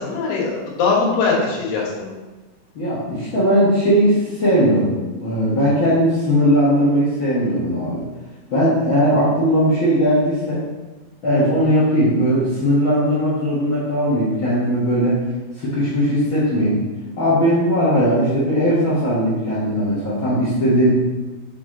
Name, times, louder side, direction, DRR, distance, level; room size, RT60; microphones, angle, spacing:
voice 1, 0.0-2.1, left 4 dB, 80° left, -3 dB, 3.4 m, -21 dB
voice 2, 2.7-8.0 8.5-10.6 11.2-15.2 15.6-16.8 17.2-20.9, equal, 60° left, -9 dB, 1.3 m, -18 dB
6.5 x 5.7 x 3.8 m, 1.2 s
omnidirectional pair, 4.6 m